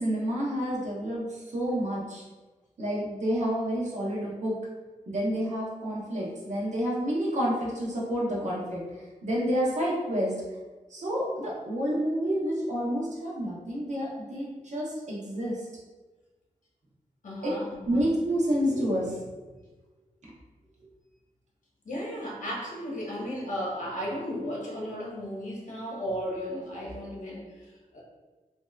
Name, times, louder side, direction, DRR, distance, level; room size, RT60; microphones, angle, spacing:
voice 1, 0.0-2.2 2.8-4.6 5.1-8.8 9.2-10.3 10.9-15.6 17.4-17.6 17.9-19.3, equal, 60° right, -5 dB, 0.9 m, -29 dB
voice 2, 17.2-18.1 21.8-27.5 27.9-28.0, equal, 70° left, -4 dB, 0.9 m, -35 dB
3.1 x 2.7 x 2.3 m, 1.2 s
wide cardioid pair, 115°, 14 cm